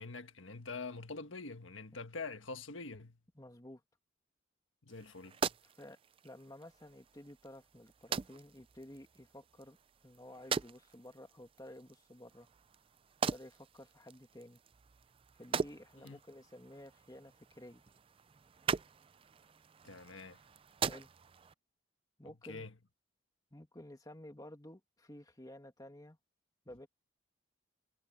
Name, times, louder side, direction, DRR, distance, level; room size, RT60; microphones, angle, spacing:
voice 1, 0.0-3.2 4.8-5.4 16.0-16.2 19.8-20.4 22.2-22.7, left 3 dB, 90° left, 1.5 m, -45 dB
voice 2, 3.3-3.8 5.6-6.0 6.2-9.8 10.0-12.5 13.3-14.6 15.3-17.8 20.8-21.1 22.2-22.7 23.5-26.2 26.7-26.9, left 1 dB, 20° left, 2.3 m, -53 dB
sound 1, 4.9-21.5, right 5 dB, 30° right, 0.4 m, -42 dB
head